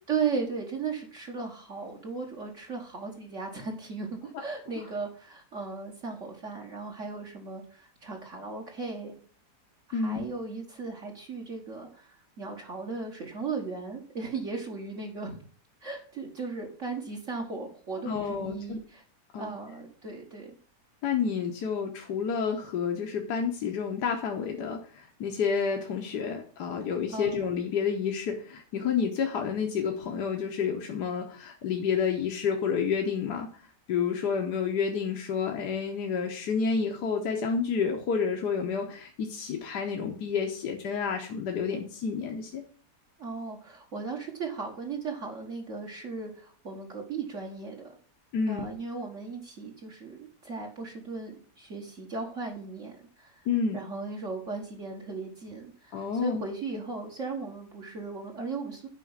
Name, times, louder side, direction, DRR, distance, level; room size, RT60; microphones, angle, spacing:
voice 1, 0.1-9.2 9.9-15.4 15.8-19.0 19.4-20.6 27.1-27.4 43.2-48.0 48.5-53.4 53.7-58.9, right 4 dB, 50° right, -1 dB, 1.8 m, -36 dB
voice 2, 9.9-10.3 18.1-18.8 19.3-19.6 21.0-33.5 33.9-42.6 48.3-48.7 53.5-53.8 55.9-56.4, left 6 dB, 75° left, 2 dB, 1.6 m, -29 dB
8.3 x 5.1 x 7.3 m, 0.43 s
omnidirectional pair, 1.8 m